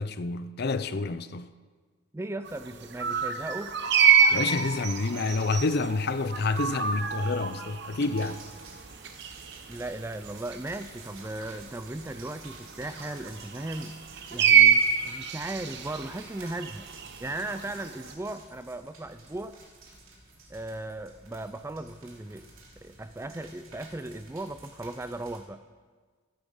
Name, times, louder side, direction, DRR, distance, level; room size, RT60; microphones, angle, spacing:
voice 1, 0.0-1.5 4.3-8.4, left 3 dB, 50° left, 0.5 m, -28 dB
voice 2, 2.1-3.7 9.7-14.0 14.3-16.9 17.2-19.6 20.5-22.5 22.8-25.6, right 2 dB, 10° right, 0.3 m, -37 dB
sound 1, 2.5-18.1, right 7 dB, 55° right, 0.9 m, -27 dB
sound 2, 8.1-25.4, right 3 dB, 80° right, 2.8 m, -51 dB
15.5 x 8.7 x 5.5 m
head